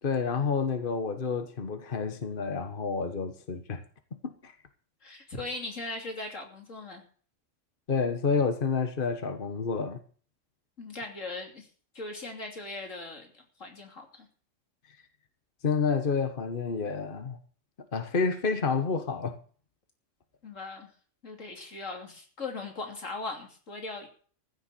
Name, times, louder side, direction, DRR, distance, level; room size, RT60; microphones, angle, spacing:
voice 1, 0.0-3.8 4.2-4.5 7.9-10.0 15.6-17.4 17.9-19.3, left 5 dB, 45° left, 1.5 m, -29 dB
voice 2, 5.0-7.0 10.8-11.7 11.9-14.3 20.4-20.9 21.2-24.1, left 3 dB, 90° left, 3.3 m, -39 dB
15.0 x 6.9 x 8.4 m
omnidirectional pair, 1.3 m